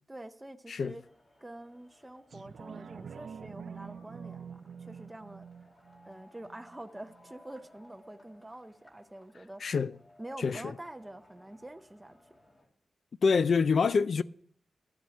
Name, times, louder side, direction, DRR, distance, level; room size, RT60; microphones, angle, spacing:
voice 1, 0.1-1.0 1.4-5.4 6.1-9.6 10.2-12.2, right 1 dB, 10° right, 0.5 m, -46 dB
sound 1, 1.0-12.7, left 1 dB, 35° left, 2.4 m, -61 dB
sound 2, 2.3-7.3 7.8-7.9, right 6 dB, 60° right, 0.4 m, -46 dB
voice 2, 9.6-9.9 10.4-10.6 13.2-14.2, left 5 dB, 55° left, 0.4 m, -26 dB
12.0 x 7.3 x 5.7 m
wide cardioid pair, 160°, 0 cm